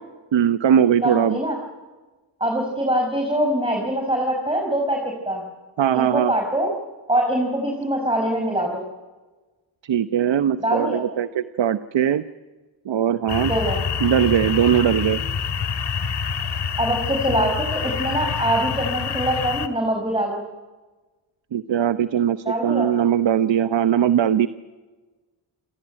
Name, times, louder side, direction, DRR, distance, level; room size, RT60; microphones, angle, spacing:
voice 1, 0.3-1.4 5.8-6.3 9.8-12.2 12.9-13.5 14.0-15.2 21.5-24.5, right 9 dB, 65° right, 12 dB, 1.0 m, -20 dB
voice 2, 1.0-1.6 2.4-5.4 5.9-6.7 7.1-8.8 10.6-11.0 13.4-13.8 16.8-20.4 22.5-22.9, right 1 dB, 10° right, 1 dB, 5.2 m, -23 dB
sound 1, 13.3-19.7, left 7 dB, 60° left, 2.3 m, -26 dB
28.5 x 17.5 x 9.0 m, 1.3 s
cardioid pair, 75°, 47 cm